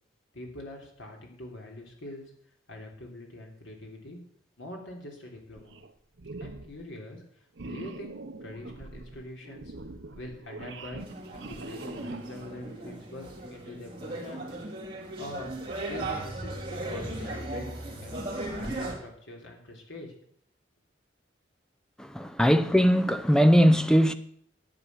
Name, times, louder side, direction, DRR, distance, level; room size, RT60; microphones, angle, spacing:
voice 1, 0.3-2.3 2.7-4.2 4.6-5.8 6.4-9.7 10.1-14.5 15.2-15.6 15.9-17.7 18.0-20.1, left 1 dB, 85° left, 3.4 m, -44 dB
sound 1, 5.6-5.9 6.2-6.8 7.6-12.5, right 2 dB, 75° right, 0.9 m, -43 dB
sound 2, 11.0-18.9, right 1 dB, 25° right, 2.7 m, -37 dB
voice 2, 22.0-24.1, equal, 5° left, 0.5 m, -20 dB
11.0 x 8.6 x 6.8 m
head